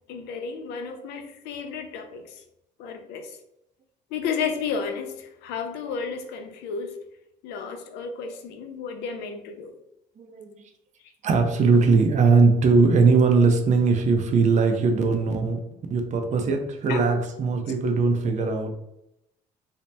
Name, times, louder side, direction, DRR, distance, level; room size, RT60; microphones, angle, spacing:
voice 1, 0.1-2.4 2.8-3.4 4.1-6.9 7.4-9.7 16.9-17.0 18.4-18.5, left 5 dB, 90° left, 6 dB, 0.5 m, -32 dB
voice 2, 10.2-10.5 11.2-15.6 15.9-18.7, right 4 dB, 45° right, 5 dB, 0.5 m, -20 dB
2.7 x 2.0 x 3.2 m, 0.83 s
cardioid pair, 110°, 17 cm